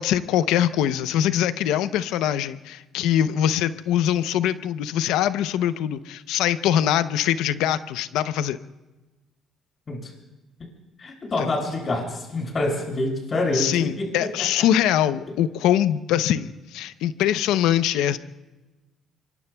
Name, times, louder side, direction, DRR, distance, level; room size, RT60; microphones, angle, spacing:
voice 1, 0.0-8.6 11.4-11.6 13.5-18.2, left 11 dB, 80° left, 13 dB, 0.7 m, -23 dB
voice 2, 11.0-14.5, left 2 dB, 45° left, 0 dB, 7.1 m, -27 dB
26.5 x 23.5 x 2.3 m, 1.1 s
supercardioid pair, 60°, 0 cm